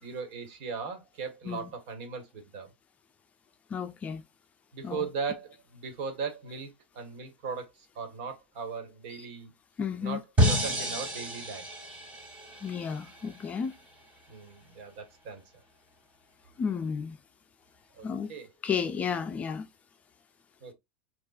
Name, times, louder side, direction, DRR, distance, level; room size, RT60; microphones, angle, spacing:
voice 1, 0.0-2.7 4.7-9.5 10.0-11.7 14.3-15.4 18.0-18.5 20.6-20.7, right 5 dB, 60° right, 1.4 m, -38 dB
voice 2, 3.7-4.2 4.8-5.1 9.8-10.2 12.6-13.7 16.6-17.2 18.0-18.3 18.6-19.7, left 6 dB, 25° left, 0.5 m, -32 dB
sound 1, 10.4-13.5, equal, 20° right, 2.7 m, -29 dB
6.7 x 2.4 x 2.4 m
supercardioid pair, 135°, 6 cm